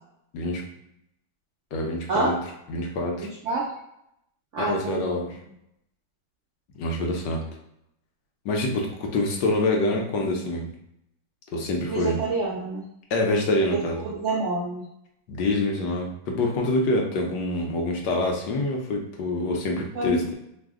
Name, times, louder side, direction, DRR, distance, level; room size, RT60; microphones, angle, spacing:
voice 1, 1.7-2.3 2.7-3.3 4.6-5.3 6.8-7.4 8.4-10.7 11.5-12.2 13.1-14.0 15.3-20.3, left 2 dB, 70° left, 0 dB, 1.2 m, -26 dB
voice 2, 3.2-3.6 4.5-5.1 11.9-12.8 14.0-14.8 19.9-20.2, right 3 dB, 90° right, -4 dB, 0.6 m, -27 dB
3.3 x 2.0 x 3.5 m, 0.79 s
omnidirectional pair, 2.1 m